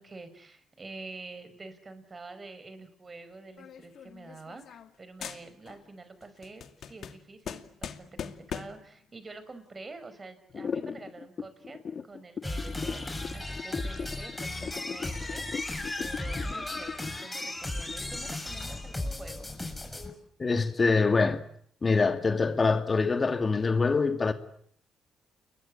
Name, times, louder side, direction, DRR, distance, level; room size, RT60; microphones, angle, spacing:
voice 1, 0.0-11.8 12.0-13.0 13.3-19.5, right 3 dB, 30° right, 5.8 m, -47 dB
sound 1, 3.6-4.9 5.2-5.9 6.2-8.9, left 8 dB, 65° left, 2.4 m, -41 dB
sound 2, 10.5-18.3, left 6 dB, 50° left, 1.7 m, -38 dB
sound 3, 12.4-20.1, left 2 dB, 10° left, 6.7 m, -36 dB
voice 2, 20.4-21.4 21.8-24.3, left 4 dB, 30° left, 2.6 m, -24 dB
30.0 x 22.5 x 8.7 m
cardioid pair, 90°, 0 cm